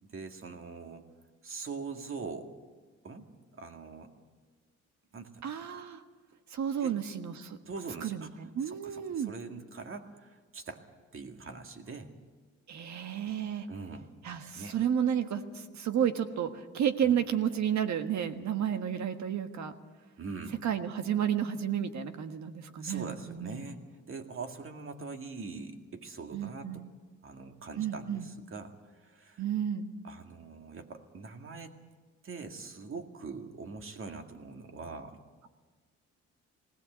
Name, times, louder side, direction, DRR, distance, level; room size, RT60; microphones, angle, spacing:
voice 1, 0.0-1.1 1.4-2.5 3.0-4.1 5.1-5.4 6.8-7.0 7.7-8.4 8.7-10.8 11.1-12.1 13.7-14.1 14.6-14.8 17.0-17.2 20.2-20.7 22.8-23.8 24.1-26.9 27.2-29.4 30.0-31.8 32.2-35.2, right 4 dB, 45° right, 5 dB, 2.2 m, -43 dB
voice 2, 5.4-6.0 6.5-7.6 8.0-9.3 12.7-13.7 14.2-19.7 20.6-23.6 26.3-26.8 27.8-28.3 29.4-29.9, right 9 dB, 65° right, 8 dB, 1.5 m, -32 dB
19.5 x 17.5 x 8.1 m, 1.4 s
cardioid pair, 90°, 30 cm